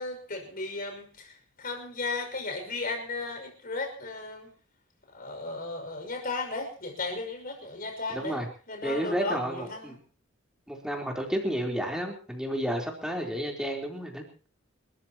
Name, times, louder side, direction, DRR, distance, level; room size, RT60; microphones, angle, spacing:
voice 1, 0.0-4.5 5.1-8.4 8.7-10.0, left 3 dB, 45° left, 4 dB, 6.0 m, -35 dB
voice 2, 8.1-8.5 8.8-10.0 10.7-14.2, equal, 5° right, 0 dB, 3.9 m, -31 dB
29.5 x 14.0 x 3.0 m, 0.39 s
head